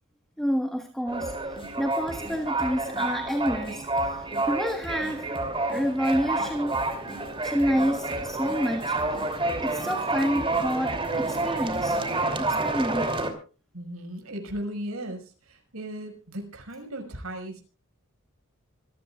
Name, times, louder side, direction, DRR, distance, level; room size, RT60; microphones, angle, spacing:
voice 1, 0.4-5.4 5.7-6.8 7.4-9.2 9.6-12.0 12.4-13.1, equal, ahead, 4 dB, 1.4 m, -29 dB
sound 1, 1.1-13.3, right 2 dB, 25° right, 2.8 m, -29 dB
sound 2, 1.2-12.2, equal, 25° left, 6.4 m, -44 dB
voice 2, 13.7-15.2 15.5-17.6, right 1 dB, 90° right, 3 dB, 5.4 m, -36 dB
26.0 x 15.0 x 2.4 m, 0.36 s
head